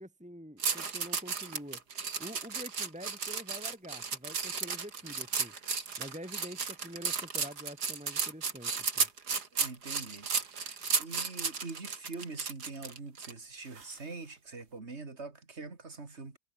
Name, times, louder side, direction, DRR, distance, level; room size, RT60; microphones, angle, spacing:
voice 1, 0.0-1.8 2.2-5.5 6.0-9.1, equal, 5° right, 3.8 m, -46 dB
sound 1, 0.6-13.3 13.8-14.0, right 5 dB, 75° right, 2.9 m, -34 dB
voice 2, 9.5-10.3 10.6-16.4, right 3 dB, 40° right, 2.9 m, -44 dB
omnidirectional pair, 1.7 m